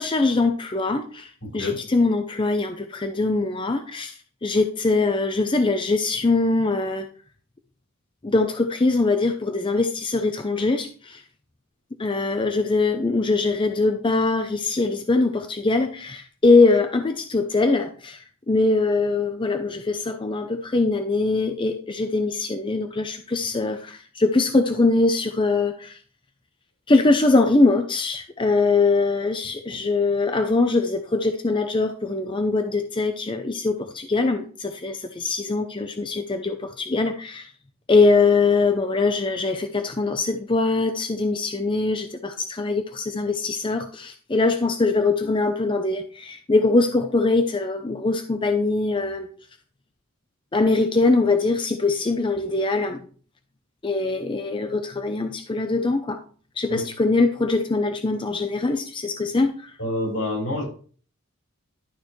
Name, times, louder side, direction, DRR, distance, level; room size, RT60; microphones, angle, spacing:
voice 1, 0.0-4.1 4.4-7.1 8.2-11.2 12.0-26.0 26.9-37.5 37.9-49.3 50.5-53.0 53.8-56.2 56.6-59.7, left 3 dB, 25° left, 6 dB, 0.5 m, -22 dB
voice 2, 1.4-1.8 56.7-56.8 59.8-60.6, left 1 dB, 75° left, -3 dB, 5.3 m, -28 dB
11.5 x 6.5 x 3.1 m, 0.43 s
head